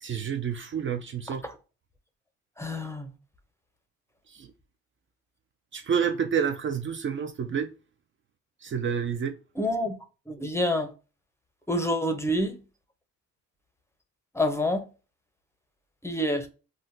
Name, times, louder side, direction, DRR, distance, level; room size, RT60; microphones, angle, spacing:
voice 1, 0.0-1.4 4.4-4.5 5.7-7.7 8.6-9.3, right 7 dB, 40° right, 0.4 m, -29 dB
voice 2, 2.6-3.1 9.6-9.9 10.3-10.9 11.7-12.6 14.3-14.8 16.0-16.5, left 1 dB, 10° left, 0.5 m, -27 dB
3.7 x 2.1 x 2.5 m
cardioid pair, 90°, 30 cm